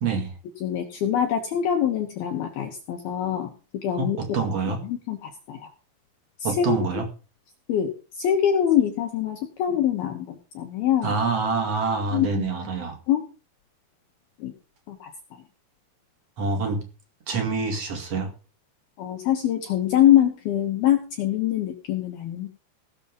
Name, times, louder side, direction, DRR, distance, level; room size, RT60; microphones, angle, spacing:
voice 1, 0.0-0.3 4.0-4.8 6.4-7.1 11.0-13.0 16.4-16.8 17.3-18.3, right 4 dB, 50° right, 5 dB, 2.1 m, -26 dB
voice 2, 0.6-3.5 3.8-4.4 4.7-5.7 6.4-7.0 7.7-7.9 8.2-11.2 12.1-12.5 13.1-13.2 14.4-14.5 14.9-15.1 19.0-22.5, left 10 dB, 70° left, 3 dB, 2.4 m, -24 dB
17.0 x 7.0 x 5.4 m, 0.35 s
omnidirectional pair, 5.9 m